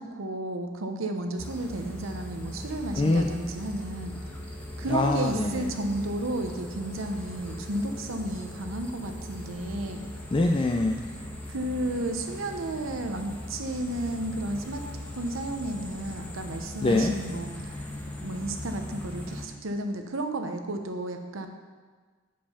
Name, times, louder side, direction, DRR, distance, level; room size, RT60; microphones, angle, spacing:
voice 1, 0.0-4.1 4.8-10.1 11.5-14.8 15.1-17.9 18.2-21.5, right 1 dB, 85° right, 5 dB, 0.8 m, -32 dB
sound 1, 1.4-19.5, left 1 dB, 10° left, 1.0 m, -40 dB
voice 2, 3.0-3.3 4.9-5.7 10.3-11.0 16.8-17.1, left 2 dB, 25° left, 2 dB, 0.4 m, -24 dB
8.9 x 5.1 x 5.6 m, 1.5 s
head